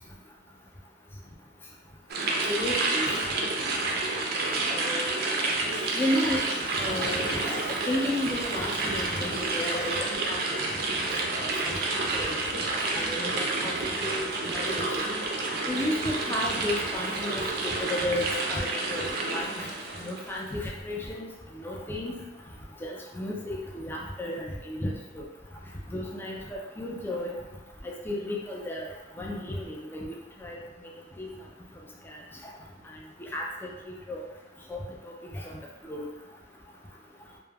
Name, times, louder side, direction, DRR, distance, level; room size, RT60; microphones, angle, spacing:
sound 1, 2.1-20.4, right 2 dB, 55° right, 0.4 m, -29 dB
voice 1, 2.5-3.2 4.7-5.1 5.9-6.5 6.8-9.9 10.3-10.4 11.3-12.3 12.9-14.3 14.5-14.9 15.7-17.4 17.9-19.0 19.3-19.7 20.0-21.3 21.6-22.1 22.8-25.2 25.9-27.3 27.8-28.9 29.2-30.1 30.4-30.6 31.2-31.3 32.1-32.2 33.2-33.4 33.9-34.2 34.7-34.8 35.8-36.1, left 1 dB, 10° left, -2 dB, 0.3 m, -33 dB
sound 2, 6.6-12.3, right 1 dB, 70° left, 0.8 m, -45 dB
sound 3, 10.5-15.2, equal, 25° right, 0.9 m, -48 dB
2.2 x 2.0 x 3.3 m, 1.1 s
head